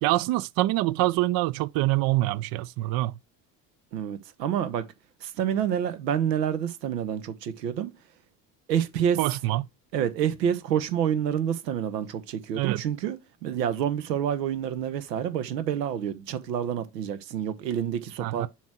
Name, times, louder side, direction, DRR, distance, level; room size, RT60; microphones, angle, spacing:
voice 1, 0.0-3.1 9.2-9.6 12.6-12.8 18.2-18.5, right 18 dB, 50° right, 0.5 m, -25 dB
voice 2, 3.9-4.8 5.2-7.9 8.7-9.2 9.9-13.2 13.4-18.5, right 9 dB, 85° right, 1.1 m, -28 dB
7.2 x 3.0 x 6.1 m
hypercardioid pair, 65°, 48 cm